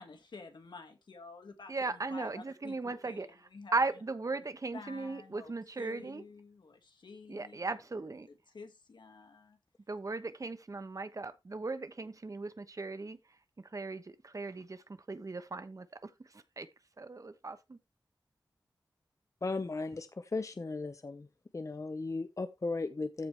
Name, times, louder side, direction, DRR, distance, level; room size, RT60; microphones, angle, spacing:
voice 1, 0.0-3.7 4.7-5.5 5.8-7.8 8.5-9.6, left 4 dB, 80° left, 2.1 m, -50 dB
voice 2, 1.7-6.2 7.3-8.3 9.9-16.7 17.0-17.8, right 3 dB, 45° right, 1.0 m, -38 dB
voice 3, 19.4-21.3 21.5-23.3, left 3 dB, 40° left, 0.8 m, -36 dB
14.0 x 4.8 x 3.4 m
wide cardioid pair, 70°, 8 cm